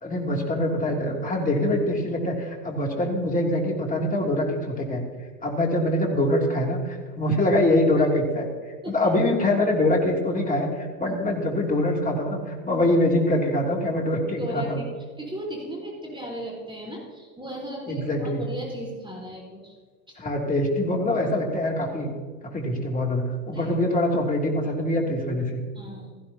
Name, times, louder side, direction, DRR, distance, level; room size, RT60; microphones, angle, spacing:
voice 1, 0.0-5.0 5.4-8.5 8.9-14.8 17.9-18.4 20.2-22.1 22.4-25.6, left 1 dB, 15° left, 0 dB, 2.7 m, -24 dB
voice 2, 14.4-14.9 15.2-19.7 20.1-20.2 23.5-23.7 25.7-26.1, equal, 10° right, -3 dB, 3.9 m, -36 dB
16.0 x 15.0 x 2.8 m, 1.5 s
hypercardioid pair, 85°, 48 cm